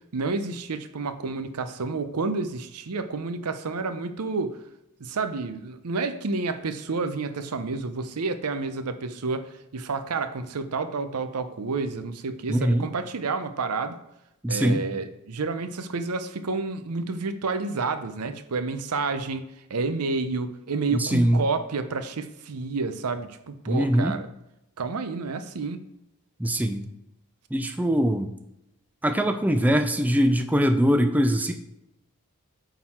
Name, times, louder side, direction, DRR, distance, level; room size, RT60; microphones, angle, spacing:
voice 1, 0.1-4.6 5.0-14.0 14.5-19.4 19.7-24.3 24.8-25.8, right 4 dB, 85° right, 10 dB, 0.7 m, -30 dB
voice 2, 12.5-12.9 14.4-14.8 20.9-21.4 23.7-24.2 26.4-26.8 27.5-28.3 29.0-31.5, equal, 5° right, 7 dB, 0.4 m, -22 dB
8.7 x 4.0 x 4.3 m, 0.86 s
head